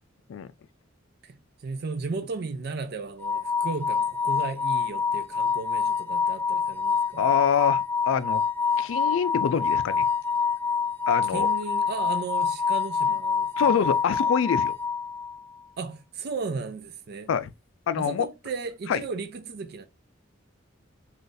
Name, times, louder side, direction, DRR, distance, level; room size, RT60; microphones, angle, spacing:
voice 1, 1.2-7.3 11.2-13.8 15.8-17.3 18.0-19.8, right 4 dB, 55° right, 0.4 m, -35 dB
sound 1, 3.2-15.4, left 5 dB, 10° left, 0.4 m, -26 dB
voice 2, 7.2-8.4 8.8-10.0 11.1-11.5 13.6-14.7 17.3-17.5 17.9-18.3 18.9-19.0, left 7 dB, 80° left, 0.3 m, -25 dB
3.8 x 2.5 x 2.6 m
head